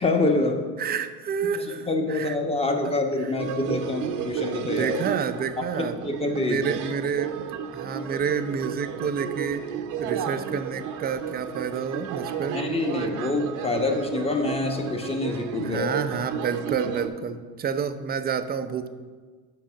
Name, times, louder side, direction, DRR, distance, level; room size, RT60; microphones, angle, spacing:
voice 1, 0.0-0.6 1.6-5.0 6.0-6.6 12.5-15.9, left 2 dB, 15° left, 3 dB, 1.1 m, -26 dB
voice 2, 0.8-2.4 2.8-3.0 4.6-6.0 6.4-7.3 7.7-9.6 10.0-12.6 15.6-18.9, right 7 dB, 25° right, 10 dB, 0.5 m, -29 dB
sound 1, 3.4-17.1, right 8 dB, 55° right, 0.8 m, -33 dB
7.5 x 5.6 x 5.8 m, 1.5 s
supercardioid pair, 100°, 37 cm